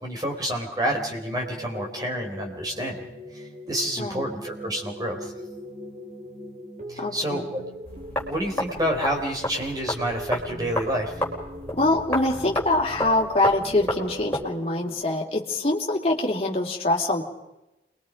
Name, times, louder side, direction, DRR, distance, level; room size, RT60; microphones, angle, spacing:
voice 1, 0.0-3.1 3.3-5.3 6.9-7.6 8.3-11.1, equal, 20° right, 1 dB, 4.0 m, -29 dB
sound 1, 0.9-15.0, equal, 40° right, 2.2 m, -40 dB
voice 2, 7.0-7.5 11.7-17.2, left 2 dB, 35° left, -1 dB, 2.9 m, -24 dB
sound 2, 7.8-14.5, left 1 dB, 10° left, 4.6 m, -32 dB
28.0 x 22.0 x 5.3 m, 0.97 s
head